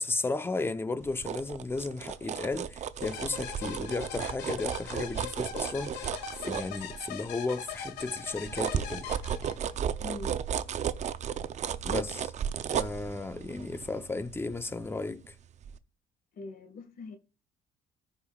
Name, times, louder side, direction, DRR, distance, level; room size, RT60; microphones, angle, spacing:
voice 1, 0.0-9.1 11.8-12.3 12.7-15.4, left 3 dB, 15° left, 0.7 m, -34 dB
sound 1, 1.0-7.3 7.7-15.3 15.6-15.8, right 8 dB, 45° right, 0.6 m, -34 dB
sound 2, 3.0-9.9, left 7 dB, 85° left, 1.4 m, -41 dB
voice 2, 10.0-10.4 16.3-17.2, left 3 dB, 60° left, 1.8 m, -42 dB
14.5 x 5.2 x 2.4 m
cardioid pair, 110°, 17 cm